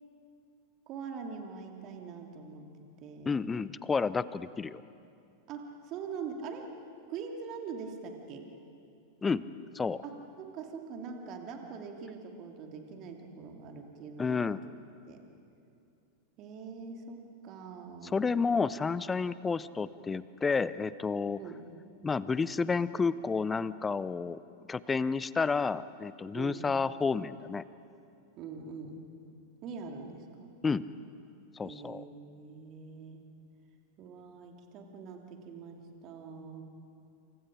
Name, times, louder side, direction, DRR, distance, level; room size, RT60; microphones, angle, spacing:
voice 1, 0.9-3.3 5.5-6.7 7.1-8.5 10.0-14.4 15.1-15.2 16.4-18.3 21.4-21.7 26.3-26.7 28.4-29.1 29.6-30.5 31.6-33.3 34.0-36.6, right 5 dB, 35° right, 3 dB, 2.8 m, -43 dB
voice 2, 3.3-4.8 9.2-10.0 14.2-14.6 18.1-21.4 22.0-24.4 24.7-27.6 30.6-30.9 31.6-32.0, left 4 dB, 15° left, 17 dB, 0.6 m, -30 dB
28.5 x 28.0 x 5.1 m, 2.6 s
figure-of-eight pair, 90°, 0 cm